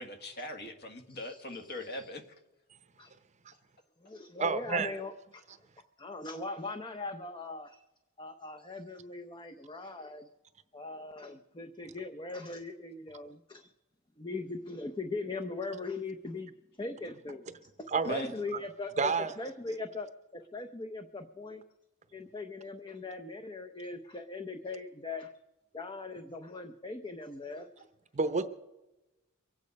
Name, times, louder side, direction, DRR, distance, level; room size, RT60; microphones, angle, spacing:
voice 1, 0.0-2.2 18.0-18.3, left 1 dB, 50° left, 7 dB, 1.5 m, -40 dB
voice 2, 1.1-2.1 3.0-3.1 4.0-5.6 6.0-7.8 8.2-10.3 10.7-13.7 14.2-17.5 17.9-21.6 22.1-25.3 25.7-27.9, left 3 dB, 20° left, 6 dB, 0.6 m, -40 dB
voice 3, 4.4-4.9 17.9-18.2 19.0-19.3 28.1-28.4, right 4 dB, 30° right, 11 dB, 0.7 m, -29 dB
23.5 x 8.8 x 5.3 m, 1.0 s
head